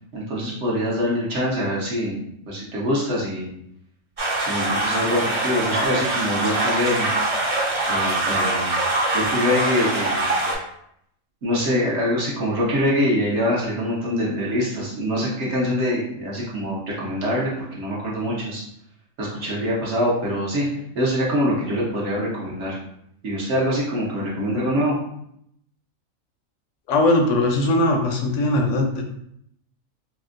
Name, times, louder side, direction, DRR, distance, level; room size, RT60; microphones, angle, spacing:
voice 1, 0.1-3.5 4.4-7.1 7.9-8.8 9.1-10.4 11.4-18.6 19.2-20.6 20.9-22.8 23.2-25.0, equal, 60° right, -5 dB, 1.1 m, -24 dB
sound 1, 4.2-10.5, right 2 dB, 35° right, 0.7 m, -23 dB
voice 2, 26.9-29.0, left 1 dB, 70° left, 2 dB, 0.9 m, -20 dB
4.3 x 2.1 x 2.4 m, 0.74 s
omnidirectional pair, 1.4 m